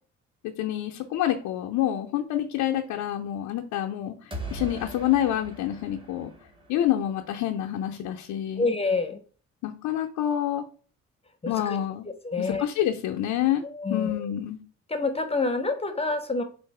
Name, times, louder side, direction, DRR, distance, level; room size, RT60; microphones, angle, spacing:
voice 1, 0.6-4.1 4.5-6.3 6.7-8.7 9.6-10.6 11.5-12.1 12.4-13.6 13.9-14.6, left 12 dB, 90° left, 1 dB, 0.6 m, -27 dB
sound 1, 4.3-7.2, right 2 dB, 15° right, 1.4 m, -40 dB
voice 2, 8.6-9.2 11.4-11.8 12.2-12.7 13.6-14.3 14.9-16.4, left 3 dB, 20° left, 7 dB, 0.8 m, -27 dB
3.9 x 2.5 x 4.7 m, 0.40 s
cardioid pair, 90°, 30 cm